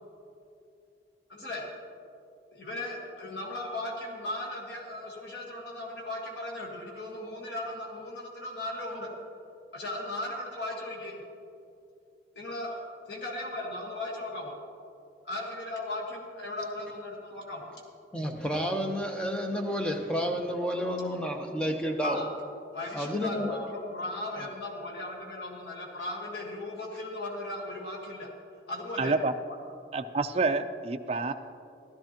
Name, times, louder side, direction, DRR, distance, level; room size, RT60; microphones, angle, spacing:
voice 1, 1.3-1.7 2.5-9.1 9.7-11.2 12.3-14.6 15.2-17.7 22.0-22.3 22.7-28.3 28.7-29.1, left 1 dB, 75° left, -2 dB, 1.5 m, -37 dB
voice 2, 18.1-22.2 22.9-23.6, equal, 5° left, 2 dB, 0.8 m, -30 dB
voice 3, 29.0-29.3 29.9-31.3, right 3 dB, 35° right, 7 dB, 0.4 m, -28 dB
16.0 x 12.5 x 2.9 m, 2.6 s
head